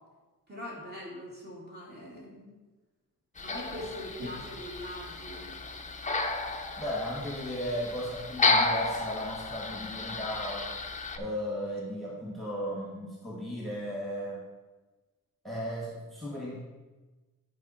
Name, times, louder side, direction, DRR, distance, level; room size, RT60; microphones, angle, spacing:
voice 1, 0.5-2.6 3.4-5.6, left 1 dB, 30° right, -5 dB, 2.5 m, -42 dB
sound 1, 3.4-11.2, left 3 dB, 20° left, 0.6 m, -32 dB
voice 2, 6.8-10.8 11.2-14.4 15.4-16.6, equal, ahead, -6 dB, 1.8 m, -35 dB
10.5 x 4.8 x 4.4 m, 1.2 s
wide cardioid pair, 140°, 35 cm